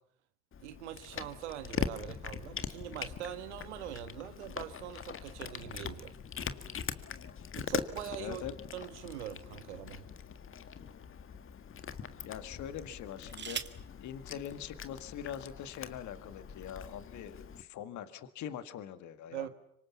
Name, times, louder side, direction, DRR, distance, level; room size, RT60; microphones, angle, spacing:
Cat, 0.5-17.6, left 7 dB, 40° left, 1.8 m, -42 dB
voice 1, 0.6-6.1 7.5-8.4 8.7-10.1 19.3-19.5, right 11 dB, 90° right, 1.4 m, -42 dB
voice 2, 8.2-8.5 12.2-13.6 14.0-19.5, left 9 dB, 60° left, 1.8 m, -43 dB
sound 1, 9.1-10.3 11.1-11.2 12.9-13.9 15.1-15.2 15.5-15.9, right 7 dB, 30° right, 1.7 m, -44 dB
26.0 x 24.5 x 7.3 m
hypercardioid pair, 70°, 34 cm